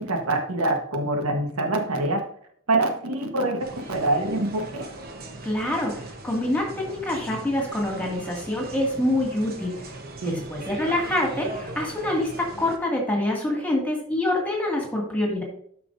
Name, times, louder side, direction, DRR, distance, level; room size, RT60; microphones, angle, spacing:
voice 1, 0.0-2.3 2.7-4.9 10.2-10.5, right 2 dB, 90° right, 4 dB, 1.3 m, -25 dB
sound 1, 3.6-12.8, right 2 dB, 45° right, 1.0 m, -39 dB
voice 2, 5.4-9.7 10.2-15.4, left 1 dB, 5° left, -1 dB, 2.1 m, -26 dB
12.5 x 5.9 x 2.6 m, 0.65 s
head